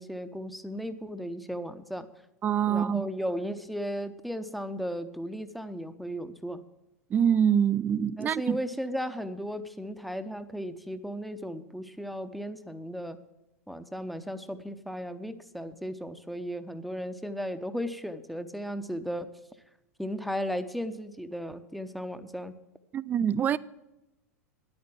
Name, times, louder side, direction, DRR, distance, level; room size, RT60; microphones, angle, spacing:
voice 1, 0.0-2.1 2.7-6.7 8.2-13.2 13.7-19.3 20.0-22.6, equal, ahead, 0.7 m, -35 dB
voice 2, 2.4-3.1 7.1-8.6 22.9-23.6, right 8 dB, 20° right, 0.3 m, -25 dB
10.0 x 8.8 x 7.4 m
figure-of-eight pair, 90°, 8 cm